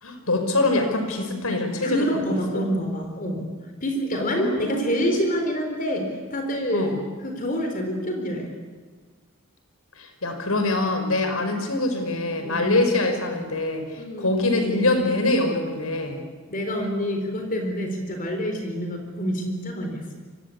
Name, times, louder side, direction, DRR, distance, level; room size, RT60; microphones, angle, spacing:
voice 1, 0.0-2.1 2.5-2.6 4.1-4.9 6.7-7.0 10.0-13.8 14.2-16.2, left 2 dB, 90° left, 6 dB, 5.6 m, -24 dB
voice 2, 1.8-3.5 3.8-8.5 12.4-12.8 14.0-14.3 16.5-20.2, equal, 40° left, 4 dB, 4.0 m, -27 dB
28.5 x 24.0 x 8.6 m, 1.5 s
head